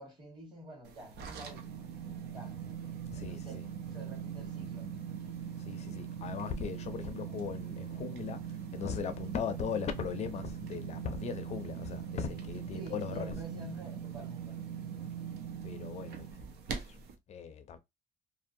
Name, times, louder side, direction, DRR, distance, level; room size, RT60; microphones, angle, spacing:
voice 1, 0.0-1.9 2.3-2.6 3.1-4.9 12.7-14.6, right 1 dB, 30° right, 1.5 m, -49 dB
sound 1, 0.9-17.1, right 8 dB, 90° right, 0.6 m, -41 dB
voice 2, 3.1-3.7 5.6-13.4 15.6-16.3 16.7-17.0 17.3-17.8, left 7 dB, 45° left, 0.4 m, -39 dB
2.6 x 2.1 x 2.6 m
cardioid pair, 150°, 16 cm